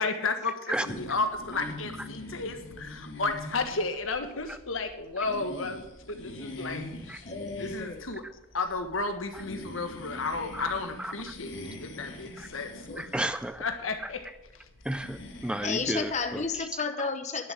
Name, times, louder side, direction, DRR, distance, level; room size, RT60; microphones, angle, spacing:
voice 1, 0.0-6.9 7.6-8.2 8.5-13.1 13.6-14.3 14.5-14.7, left 3 dB, 90° left, 7 dB, 1.5 m, -33 dB
sound 1, 0.8-16.6, left 1 dB, 70° left, 2.3 m, -44 dB
voice 2, 7.3-8.1 12.9-13.0 15.6-17.5, left 4 dB, 35° left, 7 dB, 1.0 m, -32 dB
voice 3, 13.0-13.6 14.9-16.4, right 1 dB, 5° right, 12 dB, 0.4 m, -32 dB
11.0 x 6.9 x 8.8 m, 0.90 s
head